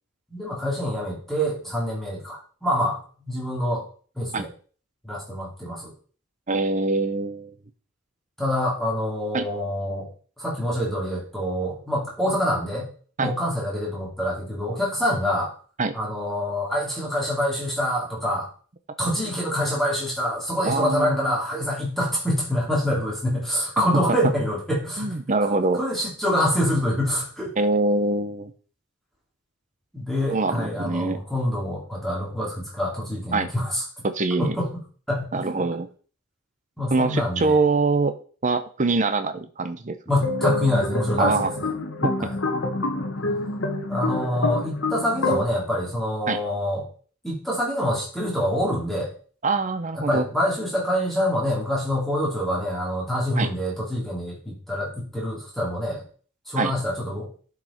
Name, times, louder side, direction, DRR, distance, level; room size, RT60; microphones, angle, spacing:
voice 1, 0.3-3.0 3.2-3.8 4.2-4.5 5.0-5.9 8.4-10.1 10.4-12.9 13.2-15.5 15.9-18.5 19.0-25.2 25.7-27.5 29.9-33.8 34.4-34.7 35.1-35.3 36.8-37.6 40.1-41.7 42.2-42.3 43.9-46.9 47.2-49.1 49.9-56.0 56.5-57.3, equal, ahead, -5 dB, 2.8 m, -26 dB
voice 2, 6.5-7.5 9.3-9.5 13.2-13.3 15.8-16.0 20.6-21.2 25.0-25.8 27.6-28.5 30.3-31.2 33.3-33.5 34.0-34.6 35.3-35.9 36.9-38.2 38.4-40.0 41.2-41.5 42.0-42.1 46.3-46.4 49.4-50.3 53.4-53.5 56.6-56.7, right 3 dB, 35° right, 9 dB, 0.7 m, -24 dB
sound 1, 40.2-45.4, left 2 dB, 55° left, 1.3 m, -27 dB
11.5 x 5.0 x 4.4 m, 0.41 s
head